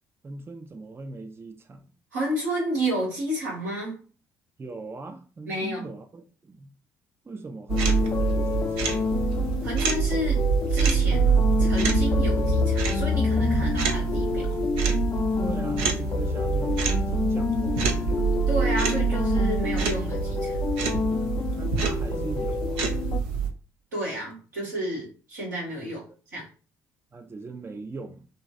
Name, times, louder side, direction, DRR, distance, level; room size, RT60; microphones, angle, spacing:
voice 1, 0.2-1.8 4.6-6.7 7.2-9.0 15.4-18.3 21.6-22.9 27.1-28.3, right 3 dB, 25° right, 0.6 m, -39 dB
voice 2, 2.1-4.0 5.5-5.9 9.6-14.6 18.5-20.6 23.9-26.5, right 1 dB, 85° right, 2.1 m, -31 dB
sound 1, 7.7-23.2, left 5 dB, 35° left, 0.5 m, -29 dB
sound 2, 7.7-23.5, right 5 dB, 70° right, 0.7 m, -25 dB
5.2 x 3.0 x 2.5 m
figure-of-eight pair, 50°, 9 cm